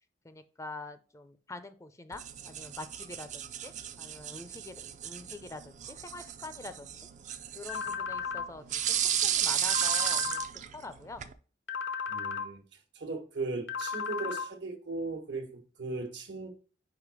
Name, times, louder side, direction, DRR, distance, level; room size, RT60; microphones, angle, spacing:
voice 1, 0.2-7.1 7.5-10.4 10.7-11.2, left 2 dB, 15° left, 0.4 m, -45 dB
sound 1, 2.1-11.3, right 10 dB, 40° right, 0.4 m, -34 dB
sound 2, 7.7-8.5 9.7-10.5 11.7-12.5 13.7-14.5, left 6 dB, 80° left, 0.7 m, -34 dB
voice 2, 12.1-12.6 12.9-16.5, right 3 dB, 75° right, 1.2 m, -37 dB
5.0 x 4.7 x 4.8 m
head